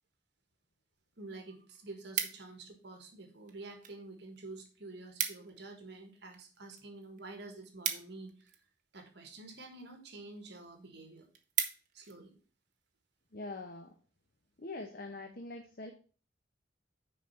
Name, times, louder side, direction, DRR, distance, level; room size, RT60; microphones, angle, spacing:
sound 1, 0.9-1.0 1.4-2.8 3.5-4.0 4.3-4.4 4.7-4.8 5.0-5.6 6.0-8.8 9.5-9.9 10.4-10.5 10.8-10.9 11.2-12.2 12.7-12.9, right 9 dB, 45° right, 0.9 m, -38 dB
voice 1, 1.2-8.6 8.9-11.3 11.9-12.3, right 2 dB, 60° right, 4 dB, 1.6 m, -49 dB
voice 2, 13.3-14.0 14.6-15.9, left 2 dB, 50° left, 4 dB, 0.8 m, -43 dB
6.4 x 5.0 x 5.6 m, 0.38 s
head